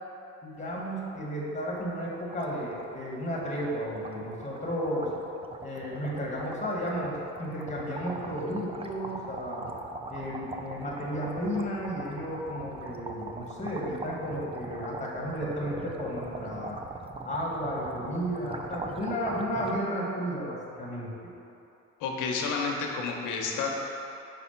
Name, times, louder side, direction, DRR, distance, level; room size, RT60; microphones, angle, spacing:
voice 1, 0.4-5.1 5.6-9.7 10.1-16.8 17.2-21.1, equal, 25° left, -3 dB, 1.5 m, -33 dB
sound 1, 0.7-0.9 1.2-1.3 1.6-19.8, right 3 dB, 20° right, 0.4 m, -41 dB
voice 2, 22.0-23.7, left 4 dB, 90° left, 0 dB, 0.9 m, -30 dB
5.1 x 4.2 x 5.7 m, 2.8 s
cardioid pair, 90°, 30 cm